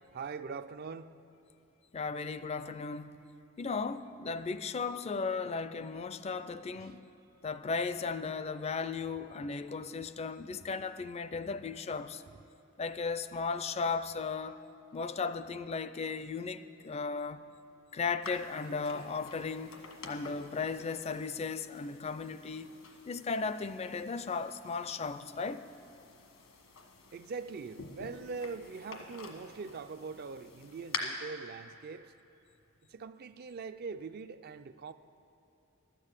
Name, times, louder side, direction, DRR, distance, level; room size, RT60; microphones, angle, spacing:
voice 1, 0.1-1.1 6.8-7.0 27.1-32.1 32.9-34.9, right 4 dB, 50° right, 0.4 m, -42 dB
voice 2, 1.9-3.2 3.6-7.0 7.4-12.2 12.8-14.6 14.9-17.4 17.9-19.8 20.1-22.7 23.1-25.6, left 4 dB, 30° left, 0.4 m, -36 dB
sound 1, 18.2-31.0, left 5 dB, 85° left, 1.4 m, -48 dB
13.0 x 7.6 x 8.2 m
head